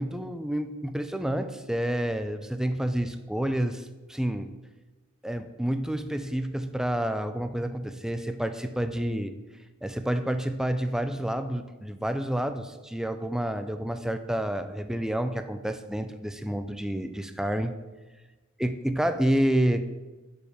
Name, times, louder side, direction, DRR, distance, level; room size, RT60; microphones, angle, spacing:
voice 1, 0.0-4.5 5.2-9.3 9.8-17.7 18.6-19.8, right 1 dB, ahead, 9 dB, 0.4 m, -29 dB
9.0 x 5.3 x 5.0 m, 1.2 s
head